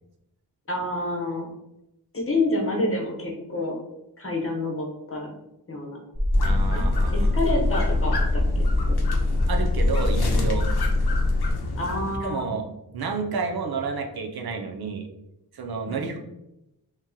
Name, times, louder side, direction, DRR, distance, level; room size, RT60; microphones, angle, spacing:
voice 1, 0.7-1.5 2.1-3.8 4.2-5.3 5.7-6.0 6.7-6.8 7.1-8.6 8.9-9.0 11.7-12.5 15.9-16.1, left 2 dB, 35° left, -1 dB, 0.9 m, -28 dB
sound 1, 6.1-11.5, left 2 dB, 5° right, 0.6 m, -23 dB
sound 2, 6.3-12.2, left 2 dB, 70° left, 0.7 m, -31 dB
voice 2, 6.4-7.3 9.5-10.7 12.2-12.7 12.9-15.1 15.5-16.2, right 4 dB, 65° right, 3 dB, 0.6 m, -30 dB
2.9 x 2.9 x 3.6 m, 0.88 s
wide cardioid pair, 120°, 40 cm